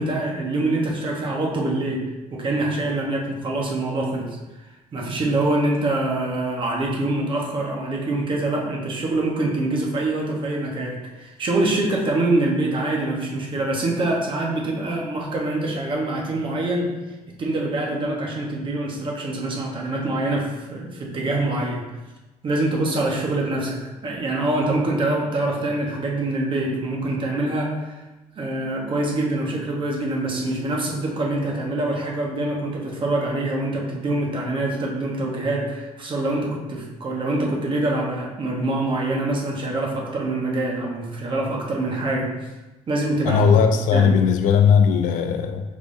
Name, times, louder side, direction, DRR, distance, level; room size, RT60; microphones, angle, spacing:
voice 1, 0.0-4.4 4.9-17.0 17.3-21.9 22.4-27.9 28.4-42.5 42.9-43.4 43.9-44.1, right 2 dB, 40° right, -1 dB, 1.1 m, -25 dB
voice 2, 43.3-45.6, left 6 dB, 85° left, 6 dB, 0.5 m, -17 dB
5.2 x 3.5 x 2.7 m, 1.1 s
cardioid pair, 120°, 13 cm